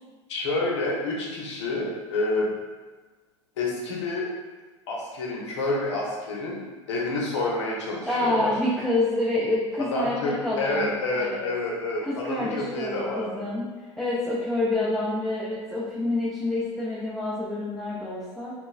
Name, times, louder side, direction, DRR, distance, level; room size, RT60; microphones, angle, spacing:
voice 1, 0.3-2.5 3.6-4.3 4.9-6.6 6.9-8.5 9.9-13.5, left 2 dB, 70° left, -3 dB, 0.8 m, -28 dB
voice 2, 8.1-11.5 12.0-13.6 14.0-18.5, left 2 dB, ahead, -9 dB, 0.6 m, -27 dB
3.0 x 2.2 x 2.3 m, 1.3 s
hypercardioid pair, 85°, 16 cm